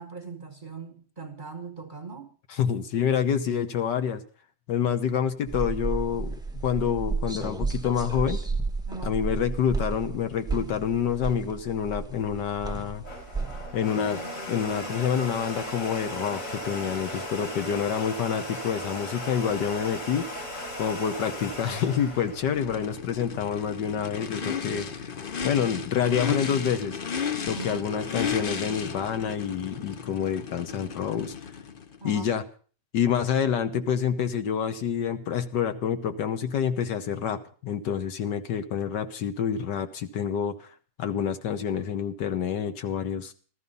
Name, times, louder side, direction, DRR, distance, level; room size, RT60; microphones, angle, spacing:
voice 1, 0.0-2.3 8.9-9.2 27.5-27.9 32.0-32.4, right 4 dB, 35° right, 0.9 m, -40 dB
voice 2, 2.5-4.2 4.7-8.4 9.0-13.0 13.7-14.2 14.5-20.3 20.8-24.9 25.4-27.0 27.5-31.3 32.0-32.4 32.9-40.7 41.0-43.3, left 8 dB, 75° left, 1.6 m, -27 dB
sound 1, 5.5-13.7, right 4 dB, 5° right, 0.4 m, -32 dB
Domestic sounds home sounds, 12.7-23.4, left 1 dB, 40° left, 3.1 m, -37 dB
Race car auto racing / Idling / Accelerating revving vroom, 22.5-32.0, left 6 dB, 55° left, 0.6 m, -34 dB
13.5 x 13.5 x 5.4 m
omnidirectional pair, 2.0 m